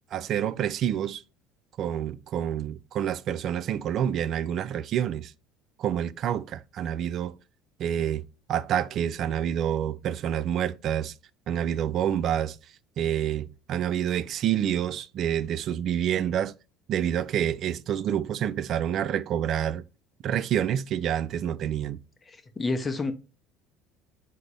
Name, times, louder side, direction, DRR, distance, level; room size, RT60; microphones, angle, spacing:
voice 1, 0.1-1.2 1.8-5.3 5.8-7.4 7.8-8.2 8.5-11.1 11.5-12.6 13.0-16.5 16.9-19.8 20.2-22.0, right 10 dB, 55° right, 0.3 m, -28 dB
voice 2, 22.3-23.1, left 3 dB, 25° left, 0.7 m, -29 dB
3.8 x 2.7 x 4.7 m
supercardioid pair, 80°, 0 cm